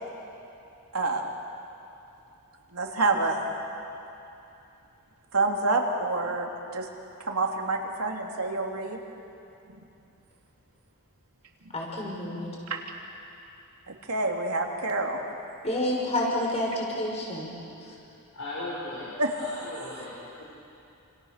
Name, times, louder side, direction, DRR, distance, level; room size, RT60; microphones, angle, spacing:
voice 1, 0.9-1.2 2.7-3.4 5.3-6.9 7.3-9.0 12.7-12.8 13.9-15.2 19.2-19.3, right 3 dB, 80° right, 0 dB, 3.3 m, -27 dB
voice 2, 11.7-12.5 15.6-17.5 17.8-17.9, left 1 dB, 30° left, -2 dB, 5.8 m, -29 dB
voice 3, 18.3-19.1 19.4-20.4, left 1 dB, 70° left, -7 dB, 6.4 m, -37 dB
29.5 x 27.5 x 6.8 m, 2.8 s
head